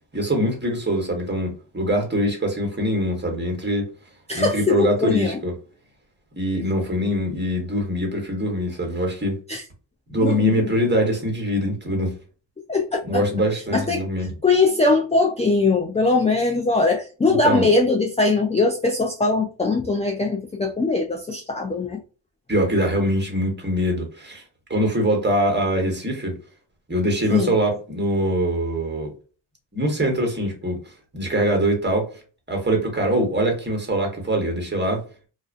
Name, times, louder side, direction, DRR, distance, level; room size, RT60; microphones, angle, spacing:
voice 1, 0.1-3.9 4.3-5.6 6.4-9.4 10.1-12.1 13.0-14.3 17.4-17.7 22.5-24.4 24.7-26.4 26.9-29.1 29.7-30.8 31.1-32.1 32.5-35.0, equal, 20° right, 1.1 m, -23 dB
voice 2, 4.3-5.4 9.5-9.6 10.2-10.5 12.7-13.2 13.7-22.0 27.3-27.5, left 3 dB, 15° left, 0.4 m, -21 dB
2.3 x 2.2 x 2.4 m
cardioid pair, 60°, 47 cm